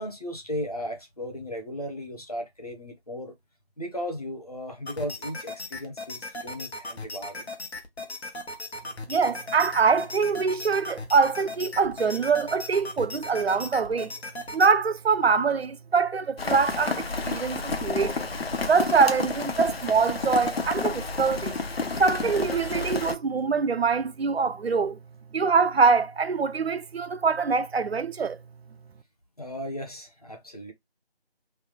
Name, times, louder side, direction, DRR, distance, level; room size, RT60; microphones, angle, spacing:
voice 1, 0.0-3.3 3.8-7.5 29.4-30.7, equal, 35° left, 0.7 m, -36 dB
sound 1, 4.9-14.7, left 2 dB, 85° left, 1.1 m, -38 dB
voice 2, 9.1-14.1 14.5-18.3 18.7-21.6 22.0-25.0 25.3-28.4, right 5 dB, 70° right, 0.5 m, -24 dB
Rain, 16.4-23.1, left 4 dB, 70° left, 0.7 m, -30 dB
3.3 x 2.1 x 2.9 m
figure-of-eight pair, 170°, 31 cm